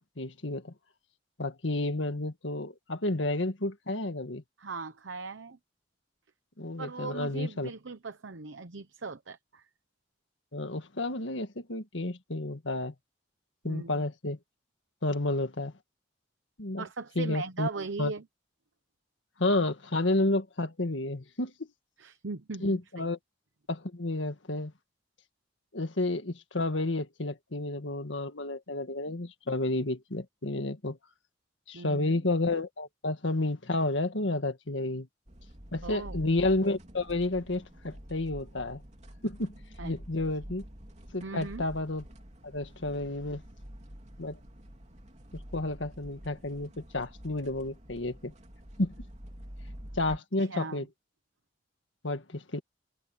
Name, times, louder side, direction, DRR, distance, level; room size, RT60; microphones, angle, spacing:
voice 1, 0.2-0.7 1.4-4.4 6.6-7.7 10.5-12.9 13.6-14.4 15.0-15.7 16.6-16.8 17.2-17.7 18.0-18.1 19.4-21.7 22.6-23.2 23.7-24.7 25.7-31.0 31.7-35.1 35.7-38.8 39.2-39.5 39.8-40.6 41.1-42.0 42.4-43.4 44.2-44.4 45.3-48.3 48.8-48.9 50.0-50.9 52.0-52.6, left 2 dB, 80° left, 1.8 m, -31 dB
voice 2, 4.6-5.6 6.8-9.6 13.6-14.0 16.8-18.2 22.0-23.1 31.7-32.2 35.8-36.2 39.8-39.9 41.2-41.6 50.1-50.8, right 4 dB, 85° right, 0.9 m, -39 dB
sound 1, 35.3-50.2, equal, 40° right, 3.2 m, -47 dB
head